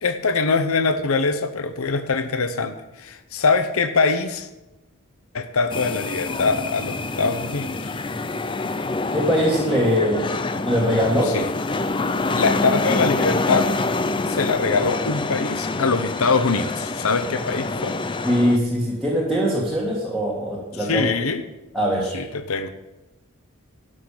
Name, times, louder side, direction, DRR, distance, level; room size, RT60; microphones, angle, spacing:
voice 1, 0.0-4.5 5.3-7.9 11.2-11.5 12.1-13.7 14.3-18.0 20.8-21.4 22.1-22.7, left 4 dB, 65° left, 10 dB, 0.8 m, -23 dB
sound 1, 5.7-18.6, left 3 dB, 20° left, 0.4 m, -26 dB
voice 2, 9.1-11.4 18.2-21.1 21.7-22.2, equal, ahead, -5 dB, 2.0 m, -22 dB
12.0 x 6.4 x 8.5 m, 0.99 s
head